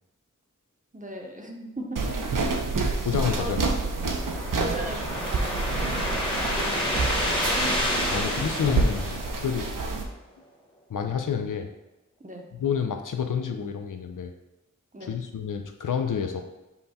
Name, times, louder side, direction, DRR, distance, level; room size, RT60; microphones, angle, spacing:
voice 1, 0.9-2.1 3.3-3.6 4.6-6.2 6.6-7.1 8.1-8.3 12.2-12.5 14.9-15.1, right 1 dB, 25° right, 1 dB, 0.7 m, -38 dB
sound 1, 2.0-10.0, right 3 dB, 80° right, 0.6 m, -28 dB
voice 2, 3.0-3.6 8.1-9.2 9.4-9.7 10.9-11.7 12.6-14.3 15.0-16.4, left 7 dB, 75° left, 5 dB, 0.5 m, -28 dB
sound 2, 3.6-9.9, left 1 dB, 15° left, 1.1 m, -30 dB
5.5 x 2.2 x 4.2 m, 0.99 s
wide cardioid pair, 65°, 32 cm